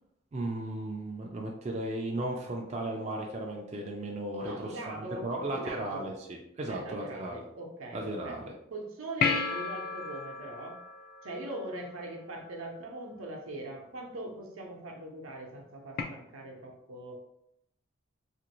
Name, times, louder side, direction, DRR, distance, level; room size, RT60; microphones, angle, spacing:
voice 1, 0.3-7.4 7.9-8.4, right 1 dB, 35° right, 0 dB, 0.3 m, -35 dB
voice 2, 4.4-6.1 6.7-10.8 11.2-17.2, right 1 dB, 90° right, 1 dB, 0.7 m, -41 dB
sound 1, 9.2-11.9 16.0-16.1, left 5 dB, 45° left, 0.3 m, -32 dB
2.9 x 2.5 x 3.0 m, 0.81 s
head